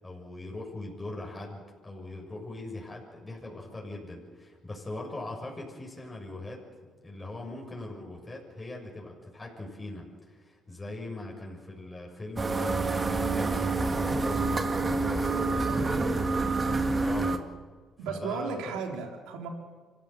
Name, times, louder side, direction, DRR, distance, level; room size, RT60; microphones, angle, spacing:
voice 1, 0.0-6.6 7.0-16.0 16.3-17.4 18.0-18.8, left 2 dB, 15° left, -1 dB, 7.0 m, -41 dB
sound 1, 12.4-17.4, right 3 dB, 30° right, 2.2 m, -27 dB
voice 2, 15.7-16.2 16.7-17.0 18.0-19.5, right 4 dB, 90° right, 3 dB, 3.6 m, -36 dB
26.0 x 15.5 x 8.2 m, 1.5 s
supercardioid pair, 80°, 0 cm